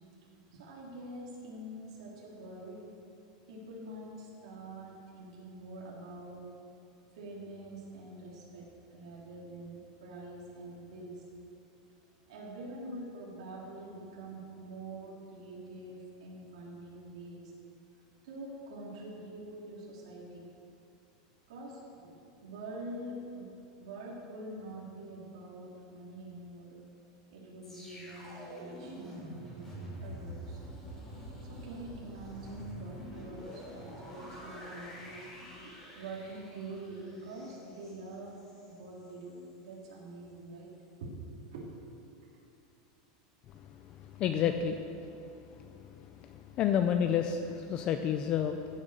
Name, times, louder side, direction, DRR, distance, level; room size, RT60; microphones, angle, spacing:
voice 1, 0.5-2.9 3.5-6.5 7.1-11.2 12.0-17.5 18.2-20.5 21.5-22.2 22.4-26.8 27.3-30.6 31.4-35.3 35.6-38.4 38.6-40.7 41.0-41.7, right 1 dB, 75° right, -4 dB, 3.1 m, -45 dB
sound 1, 27.6-38.7 39.1-39.3, right 1 dB, 10° left, 3.6 m, -46 dB
voice 2, 43.9-44.8 45.7-48.7, left 8 dB, 30° left, 7 dB, 0.5 m, -30 dB
15.5 x 7.3 x 6.8 m, 2.6 s
supercardioid pair, 170°, 3 cm